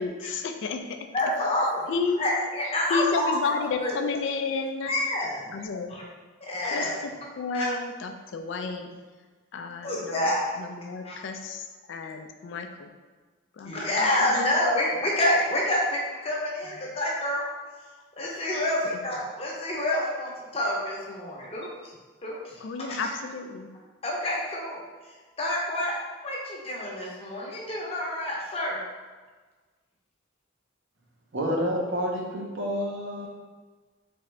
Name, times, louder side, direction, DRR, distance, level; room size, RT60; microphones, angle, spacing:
voice 1, 0.0-1.1 1.9-2.3 2.9-4.9 5.5-5.9 6.7-7.1 7.4-8.9 9.5-10.2 10.6-12.9 13.6-13.7 14.0-14.1 18.9-19.0 22.6-23.7, left 4 dB, 65° left, 5 dB, 0.3 m, -31 dB
voice 2, 1.1-1.8 2.2-4.0 4.9-5.5 5.9-6.0 6.4-7.0 7.5-7.7 9.8-10.5 11.0-11.2 13.6-17.4 18.2-21.9 22.2-22.6 22.9-23.1 24.0-24.8 25.4-25.9 26.2-28.8, left 1 dB, 30° left, -3 dB, 0.8 m, -28 dB
voice 3, 31.3-33.3, equal, 60° right, -2 dB, 0.8 m, -29 dB
3.7 x 3.4 x 3.2 m, 1.4 s
head